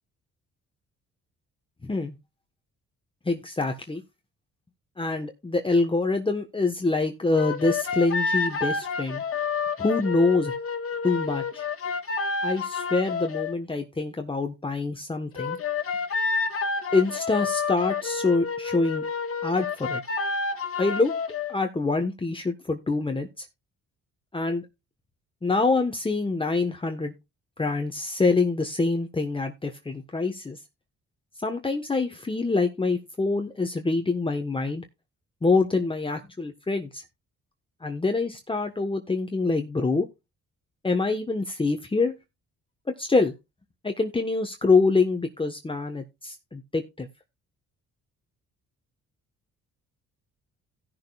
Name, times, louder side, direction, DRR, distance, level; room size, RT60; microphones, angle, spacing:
voice 1, 1.8-2.1 3.3-4.0 5.0-9.2 9.8-10.5 11.0-11.6 12.4-15.6 16.9-19.0 19.4-20.0 20.8-21.2 21.5-23.4 24.3-24.6 25.4-27.1 27.6-30.6 31.4-34.8 35.4-37.0 37.8-40.1 40.8-42.1 43.0-43.3 43.8-47.1, left 3 dB, 15° left, 1.3 m, -25 dB
sound 1, 7.3-13.5 15.3-21.5, left 4 dB, 50° left, 1.8 m, -29 dB
17.0 x 6.7 x 2.4 m
cardioid pair, 90°, 30 cm